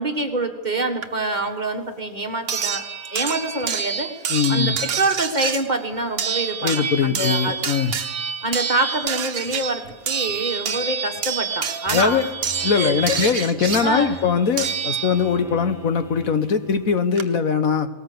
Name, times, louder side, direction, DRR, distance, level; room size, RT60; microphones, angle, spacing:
voice 1, 0.0-2.8 3.1-7.6 8.4-12.3 12.7-13.5 13.8-14.2, right 2 dB, 30° right, 5 dB, 1.6 m, -26 dB
sound 1, 1.0-1.1 2.5-15.5 16.7-16.8 17.2-17.3, right 7 dB, 75° right, 1.5 m, -27 dB
voice 2, 4.3-4.8 6.6-7.9 11.9-12.2 12.6-17.9, left 6 dB, 70° left, 10 dB, 1.5 m, -21 dB
sound 2, 11.9-17.0, left 1 dB, ahead, 1.0 m, -42 dB
19.5 x 19.0 x 8.0 m, 1.2 s
omnidirectional pair, 1.6 m